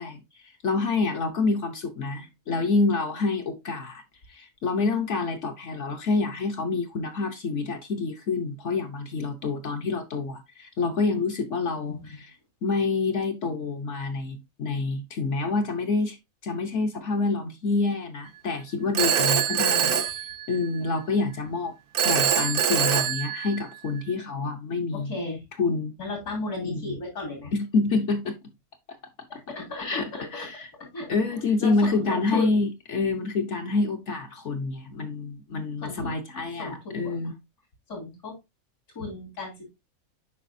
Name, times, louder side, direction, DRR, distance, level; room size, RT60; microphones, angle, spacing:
voice 1, 0.0-4.0 4.3-12.3 12.6-16.2 16.4-19.9 20.5-21.7 22.0-25.1 25.6-26.0 26.6-27.0 27.5-28.4 28.9-29.0 29.3-29.4 29.8-30.7 31.1-37.3, left 3 dB, 55° left, 1.1 m, -27 dB
voice 2, 11.9-12.2 19.5-19.9 25.1-25.4 26.0-27.5 29.3-30.5 30.9-31.1 31.6-32.6 35.8-36.1 36.6-37.1 37.9-38.3 39.0-39.5, left 3 dB, 80° left, 3.7 m, -35 dB
Telephone, 18.9-20.9 21.9-23.9, right 8 dB, 75° right, 1.3 m, -24 dB
8.3 x 5.3 x 2.6 m
omnidirectional pair, 1.6 m